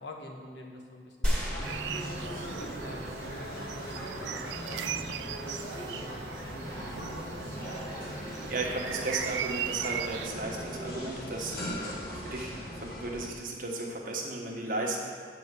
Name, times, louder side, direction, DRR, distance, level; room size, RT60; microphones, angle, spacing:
voice 1, 0.0-1.5 1.8-7.4 12.1-12.2, left 1 dB, 85° left, 1 dB, 1.2 m, -46 dB
sound 1, 1.2-3.0 3.5-3.6, equal, 5° left, 1.6 m, -33 dB
sound 2, 1.5-13.3, equal, 55° left, 1.5 m, -39 dB
sound 3, 1.6-10.3, right 9 dB, 85° right, 0.4 m, -38 dB
voice 2, 8.5-15.0, right 2 dB, 50° right, -1 dB, 1.3 m, -35 dB
8.5 x 4.8 x 6.8 m, 2.2 s
head